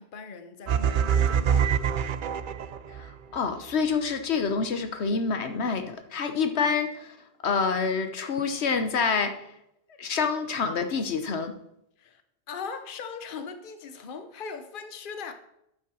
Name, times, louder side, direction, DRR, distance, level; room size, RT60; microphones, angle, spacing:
voice 1, 0.0-1.7 12.0-12.2 12.5-15.3, left 5 dB, 55° left, 1.0 m, -39 dB
sound 1, 0.7-3.1, right 8 dB, 55° right, 0.7 m, -25 dB
voice 2, 2.9-7.2 7.4-9.3 10.0-11.6, left 5 dB, 80° left, 1.3 m, -27 dB
8.6 x 7.5 x 6.2 m
omnidirectional pair, 1.1 m